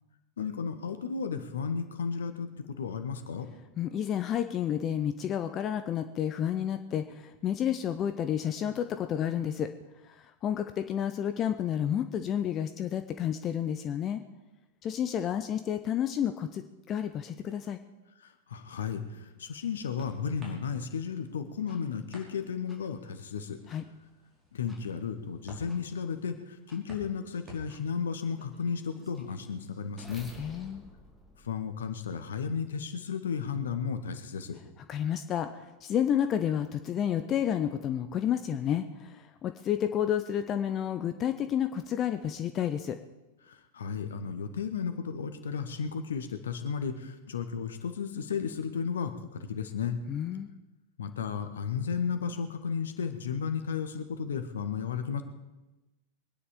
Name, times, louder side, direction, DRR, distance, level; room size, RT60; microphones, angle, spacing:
voice 1, 0.4-3.5 18.2-23.6 24.5-30.3 31.4-34.6 43.4-50.0 51.0-55.2, left 6 dB, 65° left, 9 dB, 1.3 m, -34 dB
voice 2, 3.8-9.7 10.0-14.2 14.8-17.8 23.7-23.8 30.4-30.8 34.9-43.0 50.1-50.5, left 9 dB, 30° left, 9 dB, 0.7 m, -30 dB
sound 1, 19.2-30.0, left 1 dB, 25° right, 4.7 m, -55 dB
sound 2, 21.7-21.8 22.7-22.8 23.7-23.8 24.7-24.8 25.7-25.8 26.7-26.8 27.7-27.8 28.4-32.3, left 1 dB, ahead, 2.9 m, -53 dB
23.0 x 9.8 x 5.1 m, 1.1 s
figure-of-eight pair, 90°, 0 cm